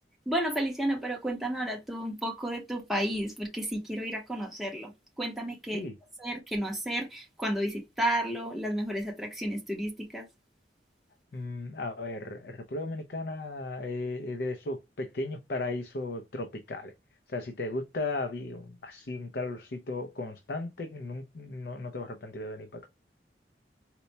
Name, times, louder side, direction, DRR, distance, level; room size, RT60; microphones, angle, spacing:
voice 1, 0.3-4.9 5.2-5.8 6.2-10.3, right 1 dB, ahead, 0.6 m, -32 dB
voice 2, 11.3-16.9 17.3-22.9, left 2 dB, 60° left, 0.5 m, -36 dB
4.3 x 2.1 x 2.6 m
head